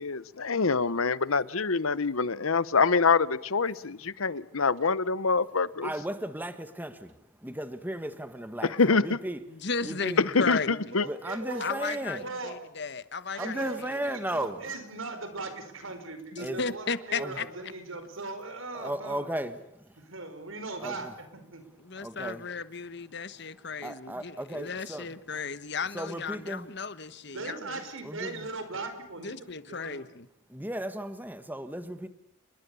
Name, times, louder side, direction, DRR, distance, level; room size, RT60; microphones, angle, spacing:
voice 1, 0.0-5.9 8.8-9.0 10.3-11.1, left 4 dB, 80° left, 1.0 m, -25 dB
voice 2, 5.8-9.4 9.8-10.3 11.0-12.3 13.4-14.6 16.4-16.6 17.2-17.4 18.7-19.6 20.8-21.1 22.0-22.4 23.8-25.2 25.9-26.7 28.0-28.5 30.5-32.1, right 1 dB, 10° right, 1.6 m, -35 dB
voice 3, 9.6-10.9 11.6-14.0 16.3-17.5 21.8-27.8 29.2-30.3, left 4 dB, 55° left, 1.2 m, -35 dB
voice 4, 10.9-12.6 13.3-19.3 20.1-21.3 21.5-21.6 27.3-30.0, right 3 dB, 70° right, 5.0 m, -39 dB
30.0 x 22.0 x 7.0 m
head